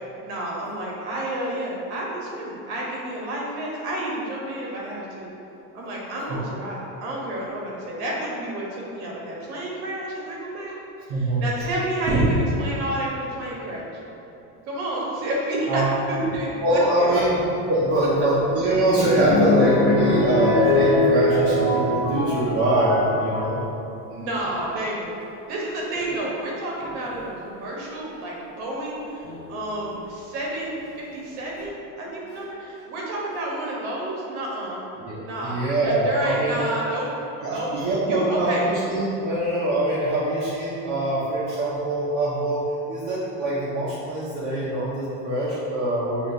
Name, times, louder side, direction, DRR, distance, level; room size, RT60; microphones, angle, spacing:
voice 1, 0.2-5.3 5.7-10.7 11.2-13.9 14.7-17.3 24.1-25.1 25.5-34.8 35.2-37.1 37.4-37.7 38.1-38.7, right 1 dB, 70° right, -3 dB, 1.1 m, -30 dB
voice 2, 11.1-11.5 12.1-12.3 15.7-15.9 16.6-17.4 17.7-23.6 35.0-36.6 37.4-42.6 42.9-46.3, right 1 dB, 50° right, -8 dB, 0.8 m, -23 dB
sound 1, 18.0-23.6 24.3-24.8 26.0-26.1 26.8-27.1 29.2-29.9 30.5-30.6 30.9-31.0, left 2 dB, 45° left, 0.7 m, -23 dB
6.1 x 3.0 x 2.6 m, 2.9 s
cardioid pair, 170°, 37 cm